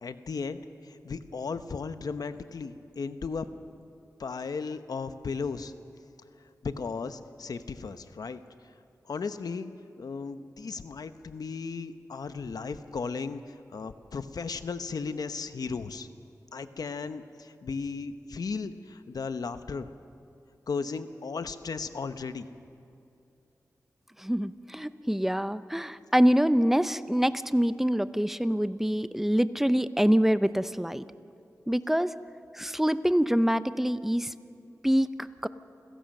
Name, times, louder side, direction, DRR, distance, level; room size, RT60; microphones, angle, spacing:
voice 1, 0.0-3.5 4.2-5.7 6.6-8.4 9.1-9.7 10.0-16.1 16.5-19.9 20.7-22.5, left 5 dB, 80° left, 10 dB, 0.9 m, -35 dB
voice 2, 24.2-31.1 31.7-32.1 32.5-34.3 34.8-35.5, equal, 5° right, 13 dB, 0.6 m, -25 dB
28.5 x 16.5 x 6.6 m, 2.7 s
wide cardioid pair, 90°, 6 cm